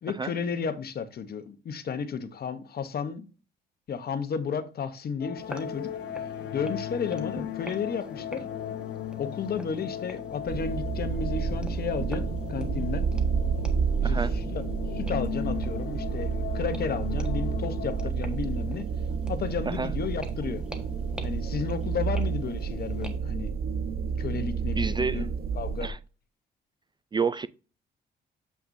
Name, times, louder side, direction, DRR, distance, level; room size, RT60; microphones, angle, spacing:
voice 1, 0.0-3.3 3.9-5.9 6.5-8.5 9.2-13.1 14.0-14.2 14.5-14.6 14.9-18.9 19.3-20.6 21.2-23.5 24.2-25.3 25.6-25.9, left 6 dB, 50° left, 0.9 m, -33 dB
sound 1, 5.2-18.1, left 11 dB, 75° left, 0.6 m, -37 dB
sound 2, 5.3-23.2, right 1 dB, 5° right, 1.4 m, -45 dB
sound 3, 10.5-25.9, right 6 dB, 50° right, 0.9 m, -30 dB
voice 2, 14.0-14.3 19.6-19.9 24.8-25.3 25.8-26.0 27.1-27.5, right 5 dB, 25° right, 0.3 m, -29 dB
7.7 x 5.7 x 2.6 m
cardioid pair, 90°, 20 cm